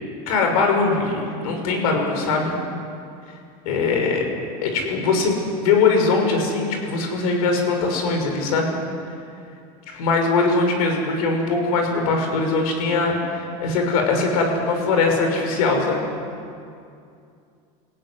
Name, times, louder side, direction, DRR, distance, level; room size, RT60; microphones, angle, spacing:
voice 1, 0.3-2.5 3.6-4.3 4.6-8.8 9.9-16.0, left 4 dB, 85° left, 3 dB, 6.0 m, -21 dB
24.0 x 17.0 x 9.9 m, 2.5 s
supercardioid pair, 135°, 18 cm